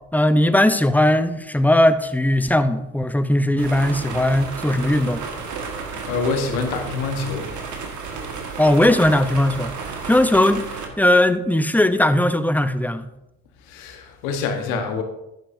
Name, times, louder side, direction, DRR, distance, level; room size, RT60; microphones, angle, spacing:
voice 1, 0.1-5.2 8.6-9.7 10.0-10.6 11.0-13.1, left 1 dB, 5° left, 0.7 m, -18 dB
sound 1, 3.6-10.9, right 5 dB, 60° right, 1.7 m, -32 dB
voice 2, 5.8-7.5 13.7-15.0, left 4 dB, 85° left, 1.3 m, -26 dB
11.0 x 9.3 x 2.7 m
hypercardioid pair, 55°, 32 cm